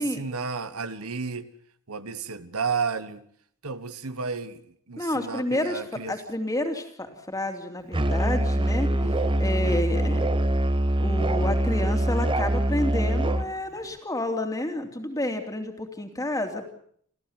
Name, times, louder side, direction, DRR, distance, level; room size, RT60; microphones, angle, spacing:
voice 1, 0.0-1.5 1.9-3.2 3.6-4.6 4.9-6.2 9.0-9.4, right 5 dB, 70° right, 1.3 m, -32 dB
voice 2, 5.0-5.8 6.1-8.9 9.4-10.3 11.0-16.7, left 1 dB, 15° left, 2.9 m, -29 dB
Musical instrument, 7.9-13.5, right 1 dB, 20° right, 1.0 m, -24 dB
29.0 x 14.5 x 8.1 m
head